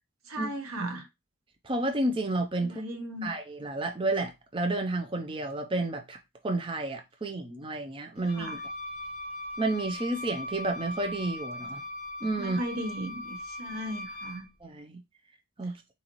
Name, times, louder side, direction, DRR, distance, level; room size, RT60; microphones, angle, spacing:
voice 1, 0.3-1.1 2.6-3.3 8.3-8.6 12.4-14.5, equal, 80° right, 1.0 m, -36 dB
voice 2, 1.6-2.8 3.2-6.2 6.4-8.6 9.6-11.8 12.2-12.6 14.6-15.0 15.6-15.8, right 2 dB, 25° right, 0.5 m, -31 dB
Wind instrument woodwind instrument, 8.2-14.5, left 1 dB, 30° left, 1.1 m, -39 dB
4.0 x 4.0 x 3.0 m
head